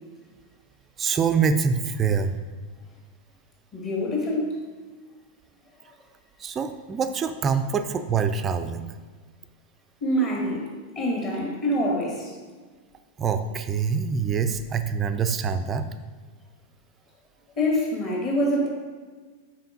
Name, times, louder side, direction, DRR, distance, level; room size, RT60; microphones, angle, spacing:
voice 1, 1.0-2.3 6.4-8.9 13.2-15.8, right 6 dB, 25° right, 9 dB, 0.5 m, -25 dB
voice 2, 3.7-4.6 10.0-10.7 11.0-12.3 17.6-18.7, equal, 30° left, -2 dB, 2.0 m, -25 dB
5.8 x 4.9 x 5.2 m, 1.4 s
figure-of-eight pair, 90°, 0 cm